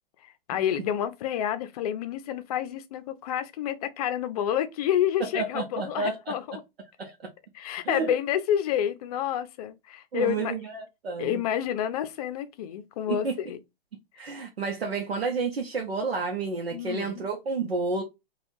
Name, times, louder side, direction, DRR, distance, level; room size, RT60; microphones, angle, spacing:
voice 1, 0.2-6.6 7.5-10.5 11.2-13.6 16.7-17.2, left 10 dB, 40° left, 0.6 m, -29 dB
voice 2, 5.3-6.3 7.0-7.1 7.8-8.1 10.1-11.4 13.1-13.4 14.2-18.0, right 4 dB, 80° right, 0.8 m, -30 dB
3.4 x 2.4 x 2.7 m
hypercardioid pair, 125°, 30 cm